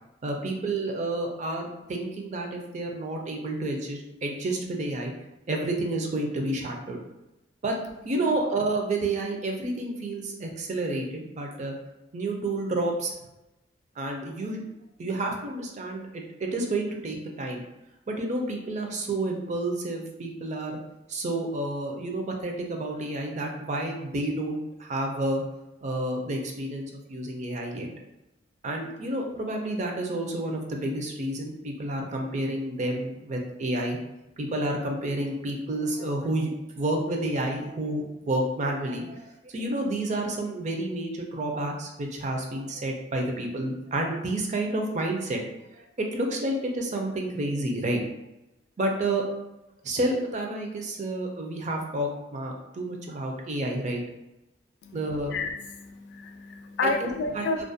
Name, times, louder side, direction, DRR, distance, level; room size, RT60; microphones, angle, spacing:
voice 1, 0.2-5.1 5.5-7.0 7.6-7.8 8.0-11.7 12.1-13.1 14.0-14.6 15.0-17.6 18.1-20.8 21.1-25.4 25.8-27.9 28.6-34.0 34.4-45.4 45.7-48.0 48.8-49.2 49.8-54.0 54.9-55.3 56.8-57.6, right 2 dB, 40° right, 1 dB, 0.4 m, -30 dB
voice 2, 55.3-57.6, left 3 dB, 65° left, 5 dB, 0.3 m, -30 dB
2.4 x 2.1 x 2.6 m, 0.94 s
head